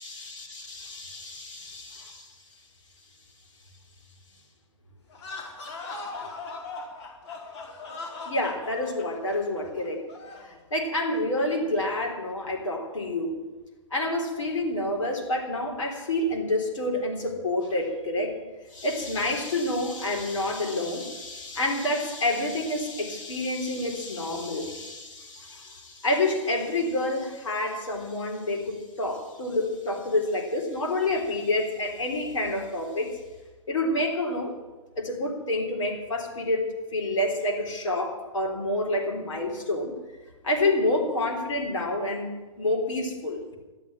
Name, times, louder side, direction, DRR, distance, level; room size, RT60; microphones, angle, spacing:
voice 1, 0.0-2.4 8.3-10.1 10.4-13.4 13.9-18.4 18.7-33.2 33.7-34.5 35.0-39.9 40.4-42.3 42.6-43.6, left 1 dB, 85° left, 1 dB, 3.8 m, -28 dB
sound 1, 5.1-10.5, left 3 dB, 65° left, 4.5 m, -39 dB
13.0 x 9.5 x 9.2 m, 1.2 s
hypercardioid pair, 140°, 16 cm